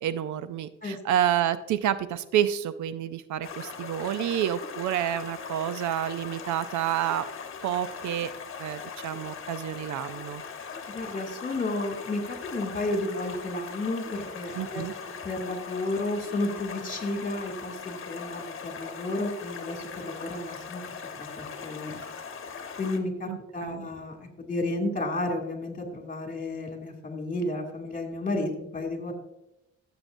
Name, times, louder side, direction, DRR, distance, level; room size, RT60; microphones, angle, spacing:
voice 1, 0.0-7.3 7.6-8.3 8.6-10.4 14.5-14.9 23.3-23.9, right 10 dB, 75° right, 14 dB, 0.6 m, -29 dB
Stream, 3.4-23.0, left 6 dB, 45° left, 1.3 m, -40 dB
voice 2, 10.9-14.9 15.2-20.8 21.2-22.0 22.8-29.1, left 2 dB, 25° left, 2 dB, 2.5 m, -32 dB
14.0 x 7.8 x 2.6 m, 0.88 s
cardioid pair, 90°, 30 cm